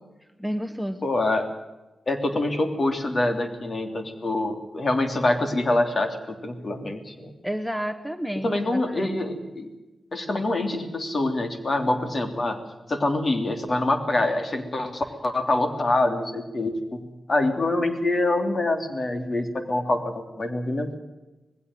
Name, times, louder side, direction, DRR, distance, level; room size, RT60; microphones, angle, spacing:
voice 1, 0.4-1.1 7.4-9.1, equal, 5° left, 10 dB, 1.3 m, -30 dB
voice 2, 1.0-1.5 2.1-6.2 6.4-7.3 8.4-9.7 10.1-12.6 12.9-17.0 17.3-21.0, left 2 dB, 50° left, 6 dB, 3.2 m, -25 dB
19.5 x 16.5 x 9.2 m, 1.1 s
cardioid pair, 55°, 0 cm